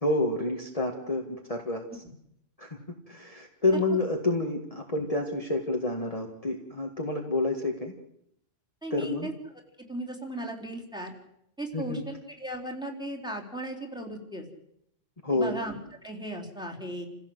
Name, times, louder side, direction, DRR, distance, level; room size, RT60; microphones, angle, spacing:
voice 1, 0.0-2.0 2.6-2.8 3.1-7.9 8.9-9.3 11.7-12.0 15.2-15.6, left 2 dB, 30° left, 1 dB, 2.1 m, -29 dB
voice 2, 8.8-9.3 9.9-11.1 11.6-14.4 15.3-15.7 16.0-17.0, right 1 dB, 5° right, 1 dB, 4.0 m, -36 dB
29.0 x 16.5 x 8.1 m, 0.77 s
omnidirectional pair, 1.3 m